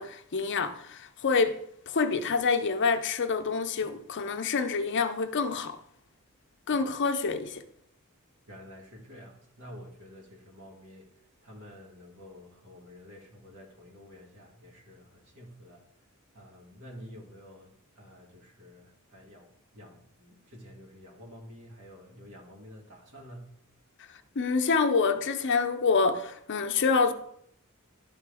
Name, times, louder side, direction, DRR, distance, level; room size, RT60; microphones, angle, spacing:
voice 1, 0.0-5.8 6.7-7.6 24.1-27.1, left 4 dB, 55° left, 0.6 m, -27 dB
voice 2, 8.5-16.1 16.3-23.5, equal, 90° right, 2.1 m, -50 dB
11.5 x 3.8 x 3.4 m
head